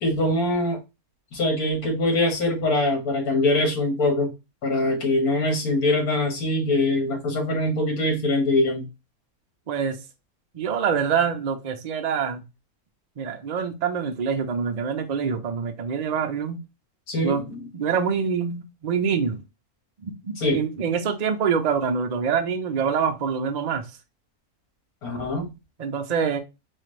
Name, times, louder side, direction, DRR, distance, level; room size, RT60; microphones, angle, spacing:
voice 1, 0.0-0.8 1.3-4.3 4.6-8.9 17.1-17.6 20.4-20.6 25.0-25.5, left 1 dB, 85° left, 1.9 m, -23 dB
voice 2, 9.7-10.0 10.5-12.4 13.2-16.6 17.2-17.4 17.7-19.4 20.0-23.9 25.8-26.4, right 6 dB, 85° right, 0.3 m, -25 dB
4.3 x 2.4 x 3.1 m
omnidirectional pair, 1.5 m